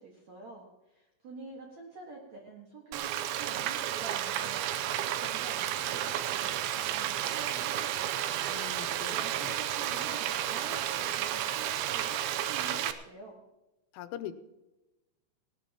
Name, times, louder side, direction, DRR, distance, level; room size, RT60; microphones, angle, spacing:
voice 1, 0.0-8.4 8.8-13.4, right 3 dB, 60° right, -1 dB, 1.9 m, -47 dB
Frying (food), 2.9-12.9, right 11 dB, 80° right, 3.0 m, -32 dB
voice 2, 8.5-9.5 13.9-14.4, left 11 dB, 90° left, 10 dB, 3.2 m, -42 dB
18.5 x 17.5 x 2.9 m, 1.0 s
omnidirectional pair, 5.6 m